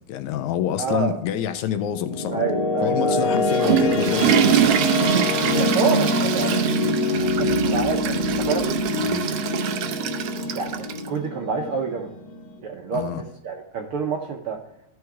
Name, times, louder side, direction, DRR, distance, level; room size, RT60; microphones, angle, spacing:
voice 1, 0.1-2.4 2.8-4.9 9.0-9.2 12.9-13.2, left 10 dB, 80° left, 2.0 m, -27 dB
voice 2, 0.8-1.1 2.3-3.3 5.5-6.6 7.0-8.6 10.5-12.1 12.6-13.0 13.4-14.6, right 5 dB, 70° right, 1.3 m, -28 dB
sound 1, 1.5-12.6, left 2 dB, 60° left, 2.3 m, -25 dB
Water / Toilet flush, 3.2-11.1, right 9 dB, 90° right, 1.2 m, -24 dB
13.5 x 4.7 x 4.7 m
omnidirectional pair, 3.5 m